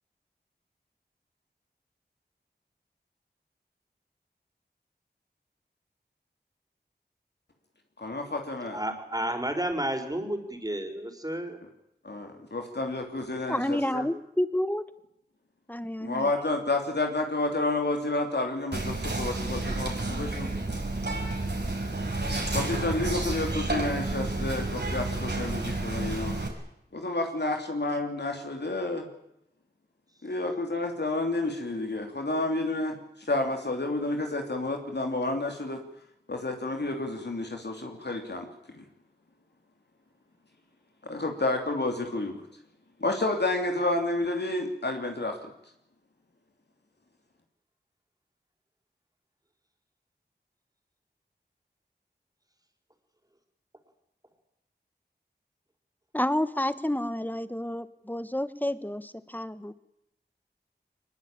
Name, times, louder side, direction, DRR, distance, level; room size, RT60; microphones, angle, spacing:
voice 1, 8.0-8.8 12.0-14.0 16.0-20.5 22.5-26.4 26.9-29.1 30.2-35.8 36.3-38.5 38.7-38.8 41.0-42.4 43.0-45.4, left 2 dB, 75° left, 3 dB, 3.0 m, -30 dB
voice 2, 8.7-11.6, right 1 dB, 20° right, 5 dB, 4.7 m, -31 dB
voice 3, 13.5-14.8 15.7-16.3 56.1-59.7, left 1 dB, 10° left, 13 dB, 1.4 m, -30 dB
Whispering, 18.7-26.5, right 2 dB, 75° right, 5.4 m, -30 dB
23.0 x 21.0 x 8.9 m, 0.80 s
wide cardioid pair, 55°, 18 cm